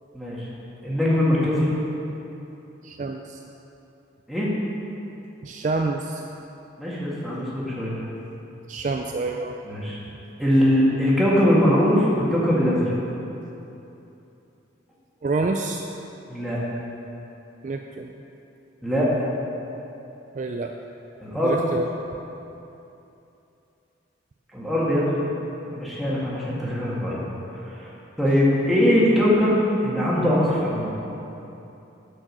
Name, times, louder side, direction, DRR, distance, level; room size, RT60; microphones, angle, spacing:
voice 1, 0.1-0.5 0.8-1.7 4.3-4.5 6.8-7.9 9.7-10.0 10.4-13.0 16.3-16.6 18.8-19.1 21.2-21.6 24.5-25.2 25.7-27.2 27.6-27.9 28.2-29.6 29.8-30.9, equal, ahead, -8 dB, 1.8 m, -21 dB
voice 2, 2.8-3.4 5.4-6.2 8.7-9.6 15.2-15.8 17.6-18.1 20.3-20.7 21.3-21.9, right 3 dB, 40° right, 3 dB, 0.3 m, -27 dB
9.0 x 6.1 x 6.2 m, 2.9 s
head